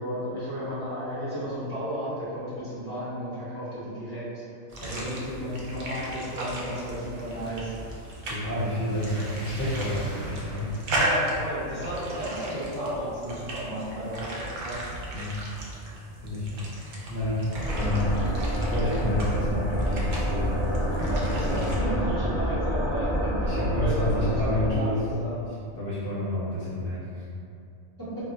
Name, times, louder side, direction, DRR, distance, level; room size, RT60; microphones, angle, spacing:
voice 1, 0.0-4.2 4.8-7.7 10.9-14.9 21.0-23.5 23.7-25.4, equal, 20° right, -13 dB, 0.8 m, -33 dB
sound 1, 4.7-21.8, right 1 dB, 60° right, 0.6 m, -36 dB
sound 2, 5.0-10.8, equal, 25° left, 0.9 m, -47 dB
voice 2, 8.2-11.0 15.1-15.4 16.2-16.8 17.1-18.1 18.5-21.9 23.4-25.0 25.8-27.0, left 1 dB, 55° left, -9 dB, 0.8 m, -29 dB
sound 3, 17.6-24.7, equal, ahead, 0.4 m, -28 dB
2.3 x 2.1 x 3.8 m, 2.5 s
omnidirectional pair, 1.2 m